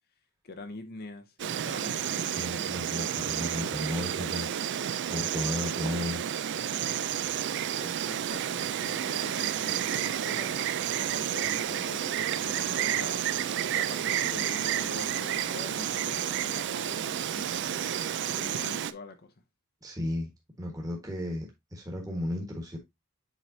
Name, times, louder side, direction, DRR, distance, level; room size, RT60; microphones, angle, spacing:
voice 1, 0.4-3.5 7.8-10.6 11.0-13.3 13.7-17.9 18.3-19.3, left 2 dB, 45° left, 0.7 m, -45 dB
Insect, 1.4-18.9, right 10 dB, 50° right, 0.4 m, -31 dB
voice 2, 2.3-4.6 5.0-6.2 19.8-20.3 20.6-22.8, left 1 dB, 15° right, 1.4 m, -34 dB
7.4 x 4.7 x 2.7 m
head